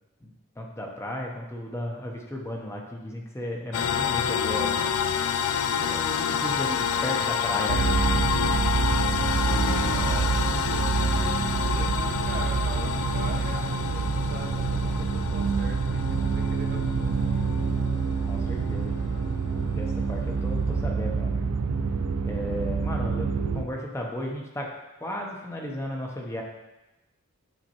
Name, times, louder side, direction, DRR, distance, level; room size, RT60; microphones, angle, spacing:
voice 1, 0.6-4.8 5.8-7.9 9.4-10.2 11.7-12.0 18.3-18.9 19.6-21.5 22.2-23.3 23.5-24.7 25.0-26.4, left 1 dB, 10° left, 0 dB, 0.7 m, -35 dB
sound 1, 3.7-20.8, left 7 dB, 75° left, 0.3 m, -29 dB
sound 2, 7.7-23.6, right 5 dB, 85° right, 0.4 m, -27 dB
voice 2, 9.8-11.2 11.5-14.0 14.3-17.5, right 2 dB, 40° right, 2 dB, 0.6 m, -41 dB
8.9 x 4.3 x 2.9 m, 1.0 s
head